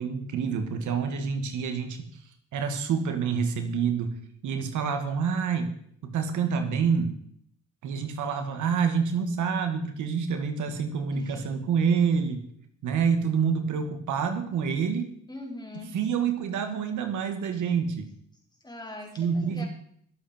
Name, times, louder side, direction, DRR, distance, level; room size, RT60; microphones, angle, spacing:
voice 1, 0.0-2.1 2.5-4.2 4.4-5.7 6.0-7.1 7.8-12.4 12.8-15.0 15.9-18.1 19.2-19.6, right 6 dB, 80° right, 6 dB, 2.1 m, -27 dB
voice 2, 11.1-11.5 15.3-16.0 18.6-19.7, left 2 dB, 15° left, -1 dB, 4.6 m, -41 dB
22.0 x 8.1 x 4.5 m, 0.65 s
cardioid pair, 90°, 30 cm